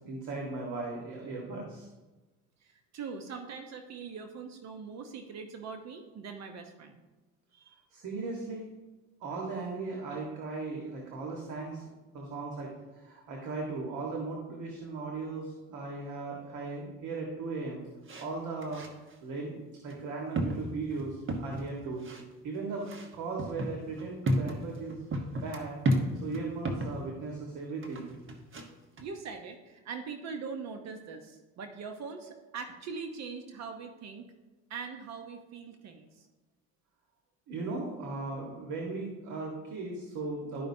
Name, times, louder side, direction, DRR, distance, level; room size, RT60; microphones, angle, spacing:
voice 1, 0.0-1.9 7.9-8.7 9.2-11.8 12.1-17.8 18.2-18.8 19.2-22.1 22.4-25.0 25.3-25.8 26.2-28.1 37.5-40.7, right 3 dB, 75° right, -1 dB, 1.6 m, -37 dB
voice 2, 2.6-7.0 7.5-7.8 29.0-34.3 34.7-36.3, right 5 dB, 55° right, 5 dB, 1.0 m, -42 dB
sound 1, 18.1-18.3 18.6-19.1 19.9-20.0 20.4-21.7 22.0-22.2 22.9-27.0 27.8-28.7 29.0-29.1, right 1 dB, 40° right, 1.3 m, -32 dB
12.5 x 5.2 x 2.7 m, 1.2 s
supercardioid pair, 75°, 31 cm